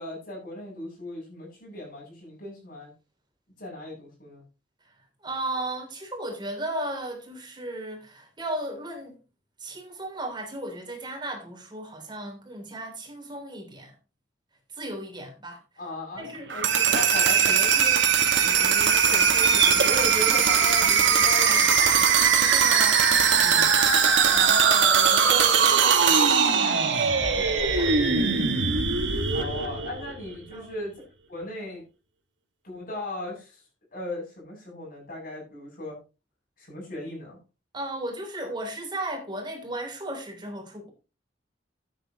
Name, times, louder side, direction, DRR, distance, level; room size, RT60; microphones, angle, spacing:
voice 1, 0.0-2.9 3.6-4.4 15.8-18.0 18.4-22.2 23.4-23.8 29.3-30.9 31.3-31.8 32.6-33.6 33.9-36.0 36.6-37.4, left 1 dB, 50° left, 7.8 m, -37 dB
voice 2, 5.2-9.2 9.6-13.9 14.7-15.6 16.2-16.5 22.3-23.0 24.3-28.0 29.8-29.9 30.5-30.7 37.7-40.9, right 1 dB, 25° right, 3.3 m, -35 dB
sound 1, 16.2-21.6, right 7 dB, 65° right, 1.1 m, -34 dB
sound 2, 16.5-30.3, right 6 dB, 85° right, 2.0 m, -21 dB
13.0 x 9.3 x 3.0 m
head